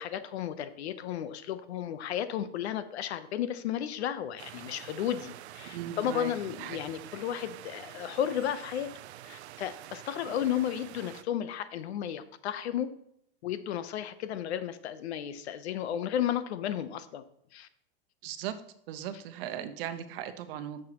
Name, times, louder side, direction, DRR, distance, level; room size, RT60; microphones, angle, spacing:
voice 1, 0.0-8.9 9.2-12.9 13.4-17.2 17.5-17.7, left 10 dB, 80° left, 12 dB, 0.9 m, -33 dB
sound 1, 4.4-11.2, right 13 dB, 85° right, 0.6 m, -47 dB
voice 2, 5.7-6.8 18.2-18.6 18.9-20.8, right 10 dB, 60° right, 10 dB, 1.0 m, -38 dB
10.5 x 6.5 x 3.0 m, 0.75 s
supercardioid pair, 135°, 32 cm